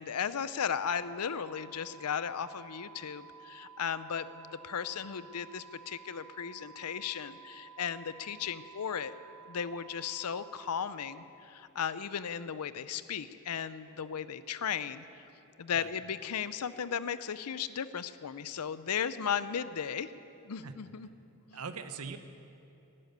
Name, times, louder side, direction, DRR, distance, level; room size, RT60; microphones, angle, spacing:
voice 1, 0.0-9.1 9.5-15.0 15.6-20.1 20.4-21.1 21.5-21.6, left 7 dB, 90° left, 15 dB, 0.6 m, -36 dB
sound 1, 0.9-10.9, right 6 dB, 65° left, 3.8 m, -53 dB
voice 2, 21.5-22.2, right 5 dB, 75° right, 10 dB, 0.9 m, -41 dB
12.0 x 11.0 x 9.2 m, 2.8 s
head